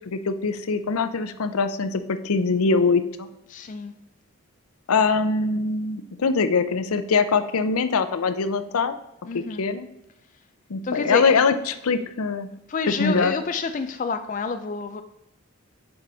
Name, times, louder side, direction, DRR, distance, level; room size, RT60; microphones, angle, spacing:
voice 1, 0.0-3.3 4.9-8.9 9.3-9.9 10.7-12.5 12.9-13.3, left 4 dB, 85° left, 11 dB, 0.6 m, -23 dB
voice 2, 3.5-3.9 9.2-9.7 10.8-11.3 12.7-15.0, left 4 dB, 35° left, 8 dB, 0.3 m, -28 dB
7.1 x 4.9 x 3.9 m, 0.89 s
head